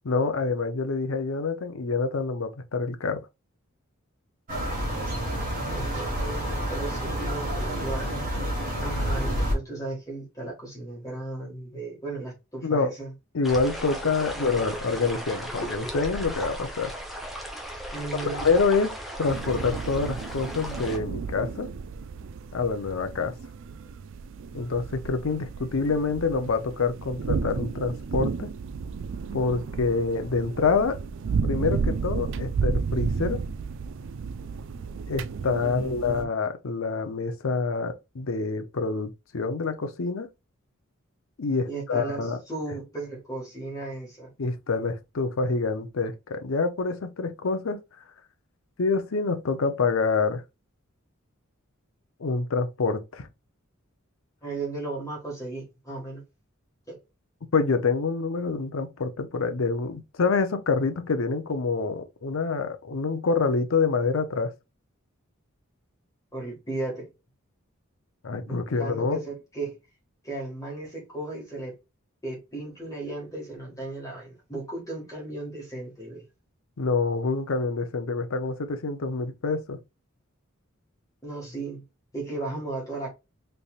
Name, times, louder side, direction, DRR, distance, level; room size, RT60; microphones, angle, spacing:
voice 1, 0.0-3.2 12.6-12.9 13.3-16.9 18.3-18.9 19.2-21.7 22.5-23.3 24.5-28.5 29.3-31.0 31.4-33.4 35.1-40.3 41.4-42.4 44.4-47.8 48.8-50.4 52.2-53.3 57.5-64.5 68.2-69.2 76.8-79.8, left 4 dB, 70° left, 0.6 m, -26 dB
sound 1, 4.5-9.5, equal, 40° right, 1.7 m, -29 dB
voice 2, 5.7-8.2 8.8-13.1 14.3-14.6 17.9-18.5 35.6-36.3 41.7-44.3 54.4-56.2 56.9-57.0 66.3-67.1 68.4-69.8 70.2-71.8 72.2-76.2 81.2-81.8 82.1-83.1, right 2 dB, 15° left, 1.7 m, -35 dB
sound 2, 13.4-21.0, equal, ahead, 0.9 m, -36 dB
sound 3, 19.3-36.2, right 5 dB, 65° right, 0.4 m, -32 dB
4.1 x 3.3 x 2.4 m
head